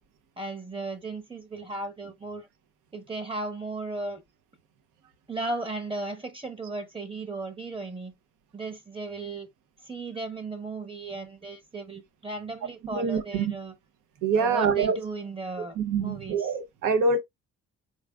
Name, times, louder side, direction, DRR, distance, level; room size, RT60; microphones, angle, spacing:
voice 1, 0.4-2.5 2.9-4.2 5.3-8.1 8.5-9.5 9.8-13.7 14.4-16.5, right 3 dB, 20° right, 0.9 m, -36 dB
voice 2, 12.9-13.5 14.2-15.0 15.6-17.2, right 5 dB, 90° right, 0.8 m, -25 dB
4.7 x 3.5 x 2.3 m
cardioid pair, 90°, 30 cm